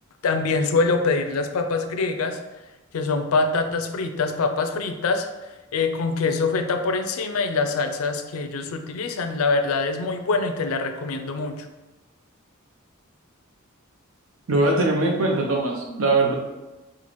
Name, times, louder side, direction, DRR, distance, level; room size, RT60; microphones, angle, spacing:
voice 1, 0.2-2.4 2.9-11.7, left 3 dB, 85° left, 7 dB, 0.4 m, -24 dB
voice 2, 14.5-16.3, right 2 dB, 75° right, 1 dB, 0.7 m, -21 dB
4.1 x 2.4 x 3.0 m, 1.1 s
head